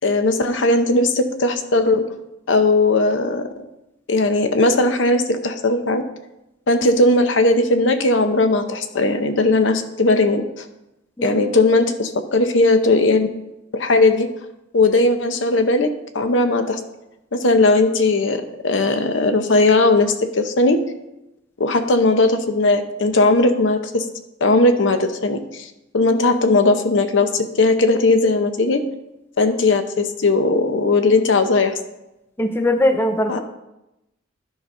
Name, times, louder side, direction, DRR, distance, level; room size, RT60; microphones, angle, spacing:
voice 1, 0.0-2.0 2.5-3.5 4.1-6.0 6.7-10.6 11.2-13.3 13.7-14.3 14.7-15.9 16.1-16.8 17.3-20.8 21.6-24.0 24.4-25.7 25.9-28.8 29.4-31.7 33.3-33.4, left 2 dB, 75° left, 8 dB, 0.7 m, -18 dB
voice 2, 32.4-33.4, left 1 dB, 10° left, 7 dB, 0.4 m, -20 dB
11.5 x 4.1 x 5.4 m, 0.92 s
head